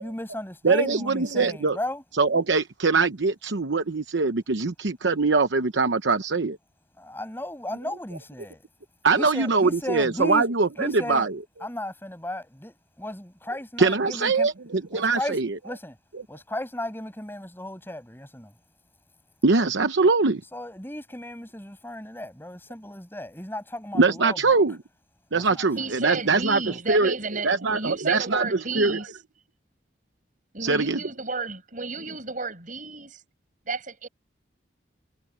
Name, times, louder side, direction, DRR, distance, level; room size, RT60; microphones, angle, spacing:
voice 1, 0.0-2.0 7.0-8.6 9.2-10.5 10.8-11.3 11.6-14.5 14.9-15.3 15.6-15.9 16.3-18.5 20.5-24.4 25.3-25.4, left 1 dB, 10° left, 7.0 m, -35 dB
voice 2, 0.6-1.8 2.1-6.6 7.8-7.9 9.0-11.4 13.8-15.6 16.1-16.2 19.4-20.4 23.9-24.8 25.3-26.6 26.9-27.1 27.4-28.5 28.8-29.0 30.6-31.0, right 4 dB, 80° right, 0.9 m, -22 dB
voice 3, 25.7-29.1 30.5-33.2 33.6-34.1, right 4 dB, 45° right, 6.5 m, -32 dB
head